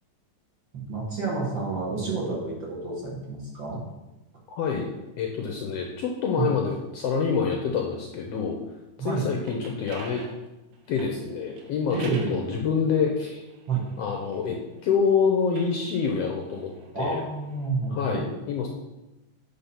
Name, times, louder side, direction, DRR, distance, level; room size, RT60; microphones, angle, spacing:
voice 1, 0.7-3.8 6.4-6.5 9.0-9.3 11.9-12.4 13.7-13.8 16.9-18.2, right 4 dB, 50° right, -4 dB, 1.8 m, -29 dB
voice 2, 5.2-8.6 9.0-10.2 10.9-13.4 14.0-14.6 14.8-17.2 17.9-18.7, left 6 dB, 75° left, 1 dB, 1.5 m, -26 dB
sound 1, 9.4-12.4 13.2-14.9 15.4-17.7, right 4 dB, 80° right, 2.5 m, -46 dB
8.4 x 3.6 x 5.7 m, 0.99 s
omnidirectional pair, 3.5 m